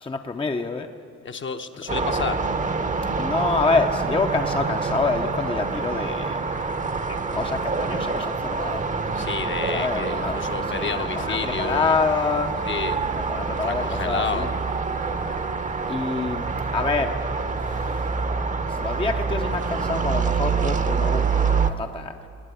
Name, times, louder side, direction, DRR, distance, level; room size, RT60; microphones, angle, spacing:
voice 1, 0.0-0.9 3.2-6.5 7.1-8.9 9.7-10.5 10.7-12.6 13.1-14.5 15.9-16.5 16.7-17.2 17.6-18.0 18.7-22.1, left 3 dB, 20° left, 5 dB, 0.7 m, -27 dB
voice 2, 1.2-2.4 9.1-12.0 12.6-13.0 13.5-14.5, left 6 dB, 40° left, 7 dB, 0.9 m, -30 dB
sound 1, 1.9-21.7, right 4 dB, 25° right, 0.8 m, -26 dB
19.0 x 8.7 x 8.4 m, 2.5 s
cardioid pair, 90°, 30 cm